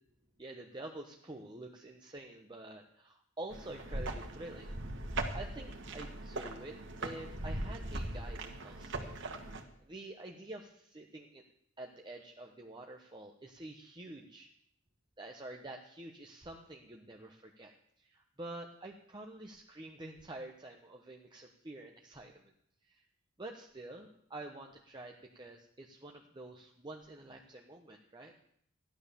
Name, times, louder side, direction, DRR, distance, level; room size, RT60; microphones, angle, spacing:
voice 1, 0.4-4.7 5.3-11.4 11.8-14.5 15.2-22.5 22.9-23.1 23.4-28.3, right 2 dB, 20° right, 1 dB, 1.1 m, -48 dB
sound 1, 3.5-9.6, right 2 dB, 65° right, 1.8 m, -40 dB
14.5 x 11.5 x 7.0 m, 0.69 s
head